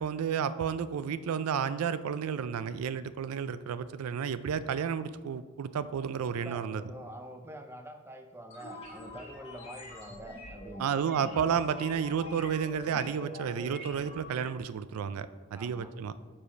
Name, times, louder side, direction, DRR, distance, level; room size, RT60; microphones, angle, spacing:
voice 1, 0.0-6.8 10.8-16.1, right 7 dB, 85° right, 13 dB, 0.4 m, -31 dB
voice 2, 6.2-11.3 15.5-15.9, right 1 dB, 10° right, 6 dB, 0.5 m, -46 dB
sound 1, 8.5-14.4, left 1 dB, 25° left, 2.3 m, -45 dB
7.3 x 4.9 x 5.1 m, 1.4 s
head